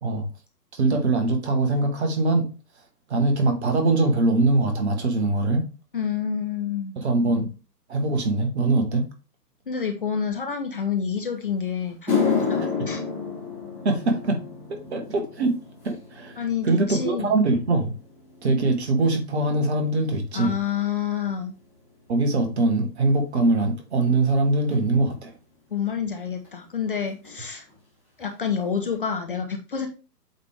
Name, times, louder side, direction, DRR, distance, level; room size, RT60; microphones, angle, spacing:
voice 1, 0.7-2.5 3.1-5.7 7.0-7.5 7.9-9.1 12.6-12.7 13.8-14.4 14.7-15.6 15.8-16.4 16.6-17.9 18.4-20.5 22.1-25.3, right 2 dB, 40° right, 1.4 m, -22 dB
voice 2, 5.9-6.9 9.7-13.0 16.4-17.3 20.3-21.5 25.7-27.6 28.2-29.9, left 7 dB, 35° left, 0.6 m, -28 dB
sound 1, 11.3-11.4 11.9-20.4 20.7-21.1 21.9-22.0 24.7-24.8 26.4-26.5 26.7-27.0 27.2-27.8 28.2-28.3 28.8-28.9, left 5 dB, 5° right, 0.7 m, -32 dB
8.1 x 3.4 x 3.4 m
figure-of-eight pair, 130°, 49 cm